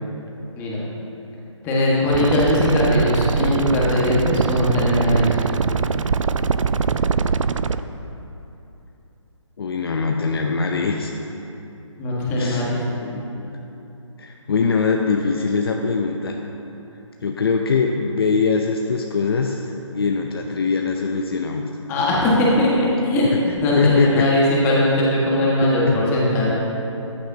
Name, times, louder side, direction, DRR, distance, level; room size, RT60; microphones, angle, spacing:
voice 1, 1.6-5.4 12.0-12.8 21.9-26.5, left 1 dB, 15° left, -6 dB, 1.7 m, -20 dB
sound 1, 2.1-7.8, right 5 dB, 75° right, 0.5 m, -22 dB
voice 2, 9.6-11.1 12.4-12.6 12.9-13.6 14.2-16.4 17.2-21.6 23.3-23.4 23.8-24.3 25.6-25.7, left 4 dB, 50° left, 2 dB, 0.7 m, -22 dB
14.0 x 10.0 x 2.9 m, 2.9 s
figure-of-eight pair, 155°, 16 cm